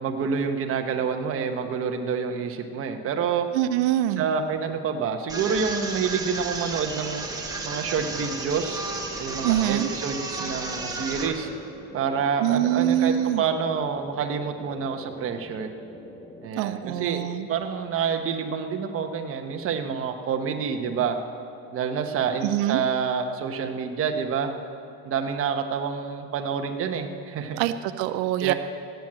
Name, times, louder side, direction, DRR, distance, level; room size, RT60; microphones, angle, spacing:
voice 1, 0.0-3.5 4.2-7.2 7.6-8.9 9.2-11.5 11.9-15.7 16.4-17.2 17.5-21.1 21.7-24.5 25.0-27.6 28.4-28.5, right 6 dB, 35° right, 5 dB, 1.2 m, -28 dB
voice 2, 3.5-4.2 9.4-9.9 12.4-13.4 16.6-17.5 22.4-22.8 27.6-28.5, right 12 dB, 85° right, 10 dB, 0.6 m, -24 dB
sound 1, 5.3-11.3, right 3 dB, 10° right, 1.4 m, -33 dB
sound 2, 6.9-16.5, equal, 10° left, 0.9 m, -44 dB
15.5 x 9.3 x 7.6 m, 2.6 s
cardioid pair, 145°, 40 cm